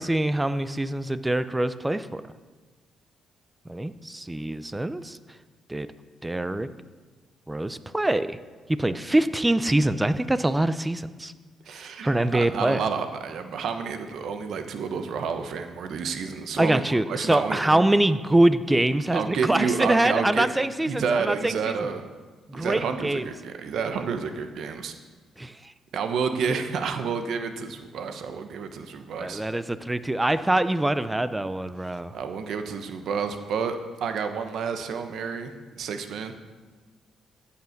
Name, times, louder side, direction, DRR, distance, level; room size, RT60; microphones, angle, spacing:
voice 1, 0.0-2.2 3.7-5.2 5.7-5.9 6.2-6.7 7.5-8.4 8.7-11.3 12.0-12.8 16.6-21.7 22.5-23.2 25.4-25.5 29.2-32.1, right 1 dB, 10° right, 13 dB, 0.6 m, -24 dB
voice 2, 11.7-17.8 19.1-20.5 20.8-22.0 22.5-24.9 25.9-29.4 32.1-35.5 35.8-36.3, right 6 dB, 70° right, 7 dB, 1.1 m, -30 dB
15.0 x 5.7 x 6.6 m, 1.3 s
cardioid pair, 90°, 0 cm